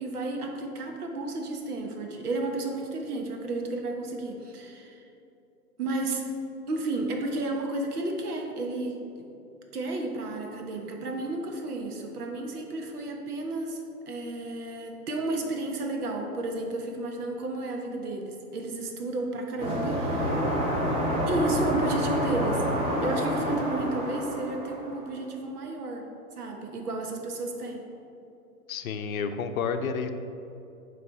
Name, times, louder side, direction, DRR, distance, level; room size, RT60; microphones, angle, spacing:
voice 1, 0.0-5.0 5.8-6.2 6.7-9.3 9.7-13.8 14.1-20.4 21.3-22.6 23.0-26.0 26.4-27.8, right 2 dB, 75° right, 2 dB, 1.2 m, -32 dB
sound 1, 19.6-25.1, equal, 10° right, 0.7 m, -28 dB
voice 2, 28.7-30.1, left 6 dB, 65° left, 8 dB, 0.6 m, -30 dB
9.3 x 3.2 x 4.1 m, 2.8 s
hypercardioid pair, 145°, 45 cm